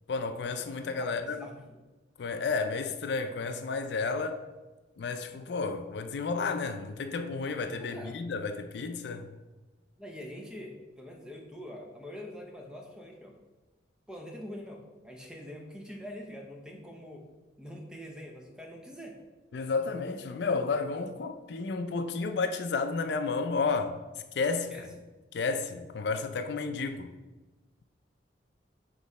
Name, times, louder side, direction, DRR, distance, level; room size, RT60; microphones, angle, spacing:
voice 1, 0.1-1.4 2.2-4.4 5.0-9.3 19.5-24.0 24.3-24.9 25.3-27.1, left 4 dB, 65° left, 0.4 m, -32 dB
voice 2, 1.0-1.8 7.8-8.2 10.0-13.3 14.1-17.3 17.6-19.2 24.7-24.9, equal, 5° right, 0.7 m, -44 dB
5.9 x 3.1 x 5.3 m
head